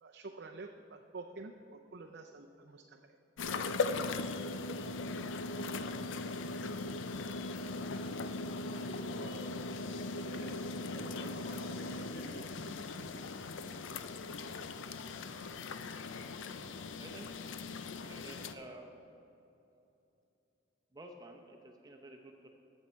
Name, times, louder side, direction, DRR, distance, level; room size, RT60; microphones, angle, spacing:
voice 1, 0.0-3.0 3.5-3.6 4.3-4.4, right 3 dB, 60° right, 3 dB, 0.5 m, -48 dB
sound 1, 3.4-18.5, left 3 dB, 90° left, 0.5 m, -39 dB
voice 2, 8.8-9.6 10.0-12.4, equal, 55° left, -3 dB, 2.4 m, -49 dB
voice 3, 17.0-17.3 17.9-18.9 20.9-22.5, right 1 dB, 20° right, 2 dB, 0.8 m, -51 dB
15.5 x 6.4 x 4.4 m, 2.9 s
head